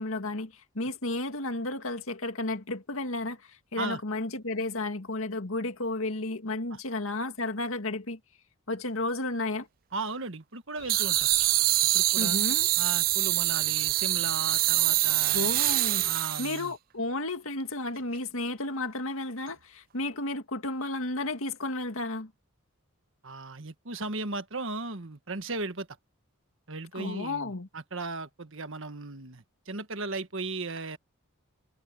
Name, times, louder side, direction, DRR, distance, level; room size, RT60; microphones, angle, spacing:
voice 1, 0.0-3.4 3.7-8.2 8.7-9.7 12.2-12.7 15.3-16.1 16.4-22.3 26.9-27.7, left 2 dB, 70° left, 2.0 m, -32 dB
voice 2, 9.9-11.3 11.9-12.4 12.8-15.5 16.0-16.7 23.2-25.9 26.7-31.0, right 3 dB, 60° right, 1.5 m, -36 dB
sound 1, 10.7-16.2, left 3 dB, 30° left, 3.6 m, -51 dB
sound 2, 10.9-16.7, right 17 dB, 40° right, 0.3 m, -25 dB
head